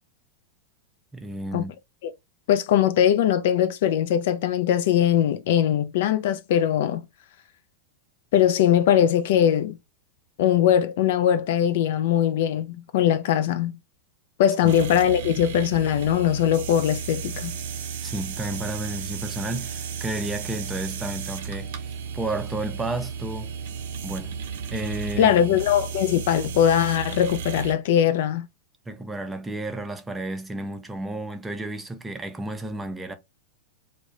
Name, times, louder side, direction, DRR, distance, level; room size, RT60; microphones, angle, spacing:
voice 1, 1.1-1.7 14.6-14.8 18.0-21.7 22.1-23.5 24.0-24.4 24.7-25.6 28.9-33.1, right 1 dB, 10° right, 0.5 m, -32 dB
voice 2, 2.5-7.0 8.3-9.8 10.4-13.8 14.4-17.6 25.2-28.5, left 10 dB, 65° left, 0.3 m, -21 dB
sound 1, 14.7-27.7, right 6 dB, 70° right, 0.5 m, -34 dB
2.3 x 2.0 x 2.9 m
hypercardioid pair, 105°, 0 cm